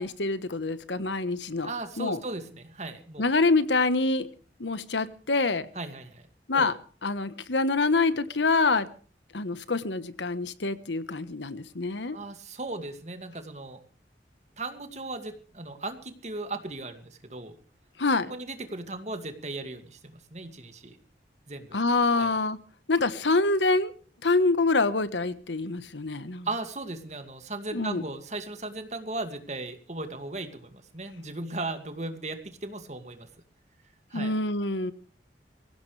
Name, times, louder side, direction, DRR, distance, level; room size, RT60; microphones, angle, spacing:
voice 1, 0.0-1.7 2.0-2.2 3.2-4.3 4.6-5.7 6.5-6.8 7.0-8.9 9.3-12.2 18.0-18.3 21.7-22.6 22.9-23.9 24.2-26.5 27.7-28.0 34.1-34.9, left 3 dB, 85° left, 13 dB, 1.3 m, -26 dB
voice 2, 1.6-3.3 5.7-6.3 6.5-6.7 12.1-13.8 14.6-17.5 18.3-21.0 21.5-21.8 22.1-22.3 26.4-33.3 34.1-34.3, right 2 dB, 40° right, 7 dB, 2.3 m, -37 dB
23.5 x 16.5 x 3.3 m, 0.40 s
head